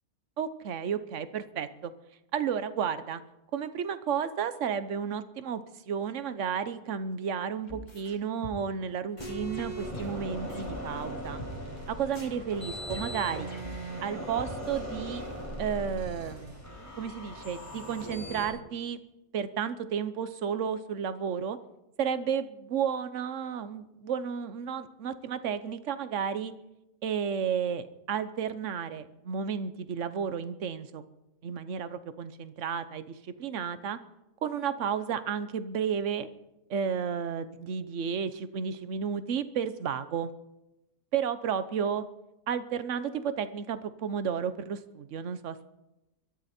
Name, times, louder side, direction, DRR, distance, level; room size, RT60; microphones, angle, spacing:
voice 1, 0.4-1.9 2.3-3.2 3.5-11.4 11.9-13.5 14.0-15.2 15.6-16.6 16.9-19.0 19.3-21.6 22.0-26.5 27.0-31.0 31.4-34.0 34.4-36.3 36.7-40.3 41.1-42.0 42.5-45.6, right 7 dB, 60° right, 12 dB, 1.2 m, -32 dB
sound 1, 7.7-8.2 8.4-8.8 9.2-10.8 11.0-11.1 11.4-11.5 11.8-11.9 12.1-14.1 14.4-14.5, left 1 dB, 30° left, 2.2 m, -44 dB
sound 2, 9.2-18.5, equal, 10° left, 5.3 m, -39 dB
22.5 x 13.5 x 4.4 m, 0.94 s
omnidirectional pair, 1.6 m